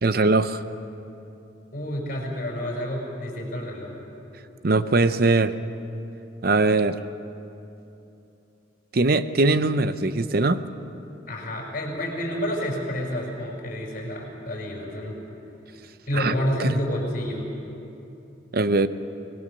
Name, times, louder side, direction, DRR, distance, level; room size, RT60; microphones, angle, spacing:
voice 1, 0.0-0.6 4.6-5.5 6.4-7.0 8.9-10.6 16.1-16.3 16.6-16.8 18.5-18.9, right 3 dB, 50° right, 12 dB, 0.7 m, -21 dB
voice 2, 1.7-4.0 11.3-15.2 16.1-17.5, equal, 40° left, -1 dB, 5.8 m, -29 dB
24.5 x 19.5 x 6.7 m, 2.9 s
head